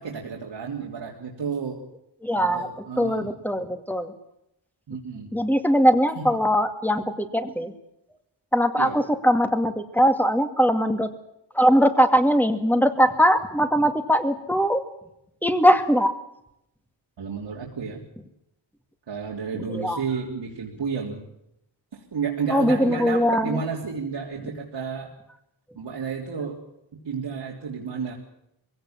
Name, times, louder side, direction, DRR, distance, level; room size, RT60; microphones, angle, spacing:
voice 1, 0.0-1.8 2.4-3.3 4.9-5.4 6.2-6.3 8.8-9.0 17.2-18.0 19.1-21.2 21.9-25.1 25.8-26.6 27.0-28.1, right 6 dB, 75° right, -3 dB, 3.4 m, -31 dB
voice 2, 2.2-2.7 3.0-4.1 5.3-7.7 8.5-11.1 11.5-14.8 15.4-16.1 19.7-20.0 22.5-23.6, equal, 5° left, 7 dB, 2.3 m, -21 dB
22.0 x 17.0 x 7.5 m, 0.81 s
wide cardioid pair, 80°, 44 cm